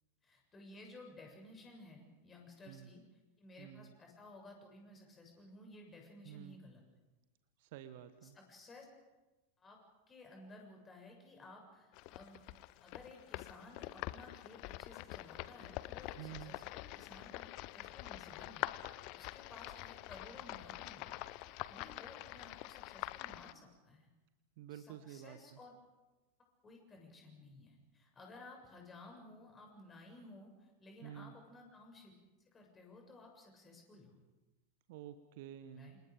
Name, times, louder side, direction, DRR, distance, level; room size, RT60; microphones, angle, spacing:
voice 1, 0.2-3.0 3.4-6.8 8.2-8.9 9.6-9.8 10.1-12.4 12.8-17.5 17.7-21.1 21.7-24.1 24.7-25.7 26.6-32.2 32.5-34.2 35.7-36.0, left 2 dB, 20° left, 1 dB, 7.4 m, -56 dB
voice 2, 3.6-3.9 6.2-6.6 7.6-8.4 16.1-16.5 24.6-25.6 31.0-31.3 34.9-36.0, right 11 dB, 50° right, 11 dB, 1.3 m, -50 dB
sound 1, 11.9-23.5, left 18 dB, 45° left, 0.8 m, -46 dB
28.5 x 28.0 x 5.2 m, 1.2 s
figure-of-eight pair, 90°, 0 cm